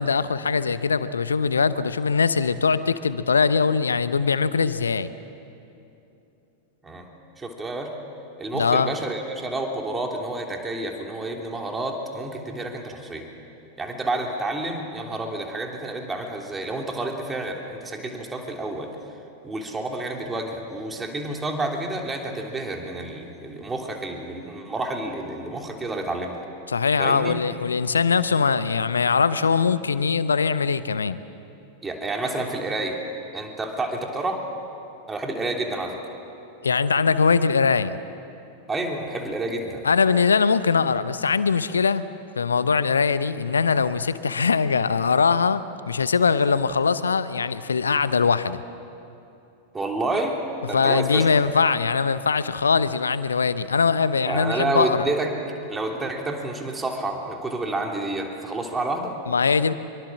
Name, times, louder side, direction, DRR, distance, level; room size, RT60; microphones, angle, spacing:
voice 1, 0.0-5.1 8.5-8.9 26.7-31.2 36.6-38.0 39.8-42.1 42.4-48.6 50.7-55.1 59.3-59.7, left 5 dB, 75° left, 15 dB, 0.8 m, -21 dB
voice 2, 7.4-7.9 8.4-13.3 13.8-18.9 19.4-26.4 27.0-27.4 31.8-33.0 33.3-34.4 35.1-36.0 38.7-39.9 49.7-50.4 50.7-51.5 54.2-55.3 55.7-59.1, right 2 dB, 15° right, 2 dB, 3.1 m, -29 dB
25.5 x 23.5 x 7.5 m, 2.8 s
figure-of-eight pair, 90°, 0 cm